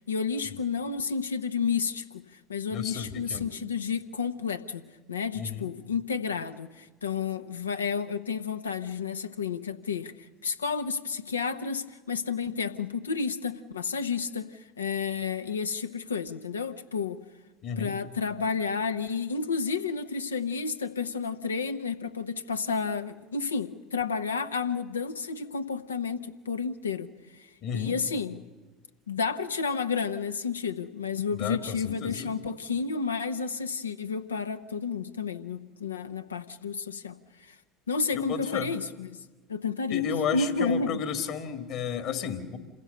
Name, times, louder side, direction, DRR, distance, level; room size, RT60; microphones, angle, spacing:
voice 1, 0.0-2.2 2.5-10.1 10.4-17.2 17.8-28.4 29.1-37.2 37.5-37.6 37.9-39.2 39.5-40.0 40.3-41.0, left 5 dB, 85° left, 9 dB, 0.9 m, -31 dB
voice 2, 2.7-3.5 5.3-5.7 17.6-18.0 27.6-27.9 31.3-32.3 38.1-38.7 39.9-42.6, left 7 dB, 55° left, 8 dB, 2.1 m, -32 dB
27.5 x 16.0 x 6.7 m, 1.3 s
figure-of-eight pair, 70°, 0 cm